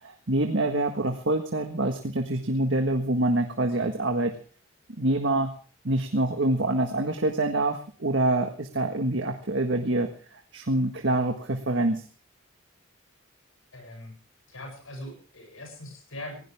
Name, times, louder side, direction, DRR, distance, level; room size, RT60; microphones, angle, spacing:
voice 1, 0.0-4.3 5.0-5.5 5.8-12.0, right 2 dB, 65° right, 4 dB, 1.7 m, -26 dB
voice 2, 13.7-14.1 14.5-16.4, left 1 dB, 80° left, 4 dB, 7.9 m, -41 dB
20.0 x 17.0 x 3.6 m, 0.39 s
head